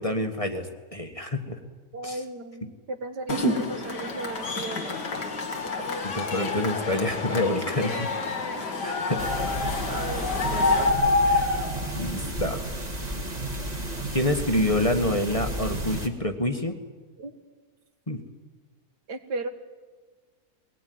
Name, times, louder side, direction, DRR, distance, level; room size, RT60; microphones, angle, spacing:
voice 1, 0.0-1.6 2.0-2.2 6.0-8.1 8.8-9.3 11.3-11.5 11.9-12.7 14.1-16.7 18.1-18.2, left 1 dB, 20° left, 4 dB, 1.6 m, -27 dB
voice 2, 1.9-5.2 8.5-8.6 9.9-10.9 17.2-17.3 19.1-19.5, right 2 dB, 80° right, 7 dB, 2.2 m, -36 dB
Cheering / Crowd, 3.3-10.9, left 3 dB, 85° left, 2.5 m, -30 dB
sound 1, 9.2-16.1, left 1 dB, 25° right, 2.3 m, -27 dB
22.0 x 19.0 x 9.5 m, 1.4 s
omnidirectional pair, 1.8 m